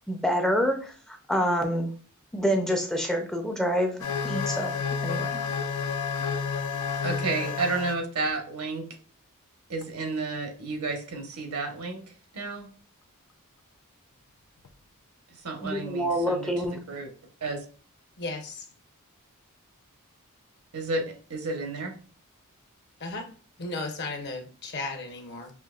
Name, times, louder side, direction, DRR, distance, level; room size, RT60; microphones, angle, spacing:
voice 1, 0.1-1.9 2.3-4.8 5.0-5.4 15.6-16.8, equal, 5° left, 0.5 m, -27 dB
sound 1, 4.0-8.0 9.8-9.9 14.7-14.8, left 5 dB, 80° left, 0.5 m, -30 dB
voice 2, 7.0-8.8 9.7-12.0 12.3-12.7 15.4-16.4 16.9-17.1 17.4-17.6 20.7-21.9, right 3 dB, 75° right, 1.0 m, -31 dB
voice 3, 18.2-18.6 23.0-23.3 23.6-25.5, left 3 dB, 50° left, 0.8 m, -35 dB
5.7 x 2.7 x 2.3 m
head